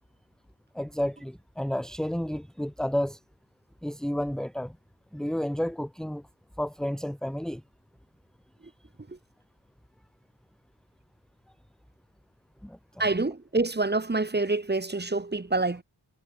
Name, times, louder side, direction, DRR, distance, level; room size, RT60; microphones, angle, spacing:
voice 1, 0.7-3.2 3.8-4.8 5.1-6.2 6.6-7.6 12.6-13.0, equal, ahead, 1.9 m, -31 dB
voice 2, 13.0-15.8, right 3 dB, 25° right, 5.6 m, -27 dB
wide cardioid pair, 155°, 44 cm